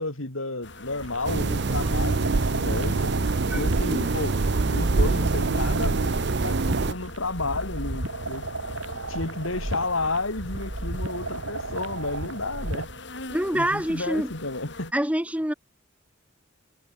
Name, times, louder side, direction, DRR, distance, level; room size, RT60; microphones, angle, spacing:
voice 1, 0.0-3.1 3.5-4.4 4.7-6.1 6.4-8.4 9.1-12.9 13.5-14.9, left 2 dB, 85° left, 4.5 m, -31 dB
sound 1, 0.6-14.9, left 2 dB, 60° left, 5.7 m, -43 dB
sound 2, 1.0-13.0, right 2 dB, 90° right, 3.9 m, -34 dB
sound 3, 1.2-6.9, right 3 dB, 55° right, 0.6 m, -25 dB
voice 2, 13.3-14.3 14.9-15.5, right 1 dB, 5° right, 1.7 m, -25 dB
head